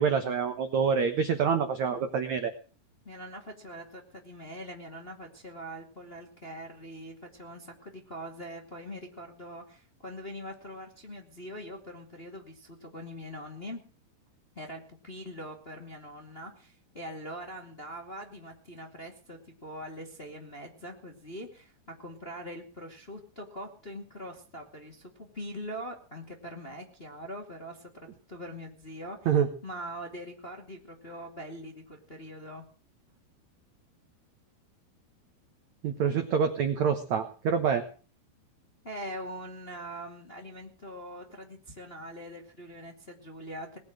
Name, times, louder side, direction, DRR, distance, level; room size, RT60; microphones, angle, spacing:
voice 1, 0.0-2.5 29.2-29.5 35.8-37.8, right 6 dB, 75° right, 7 dB, 1.6 m, -26 dB
voice 2, 3.0-13.8 14.5-21.7 22.0-27.9 28.3-29.3 29.6-32.6 38.8-43.8, equal, 25° left, 2 dB, 1.3 m, -42 dB
20.5 x 9.5 x 6.3 m, 0.38 s
omnidirectional pair, 5.3 m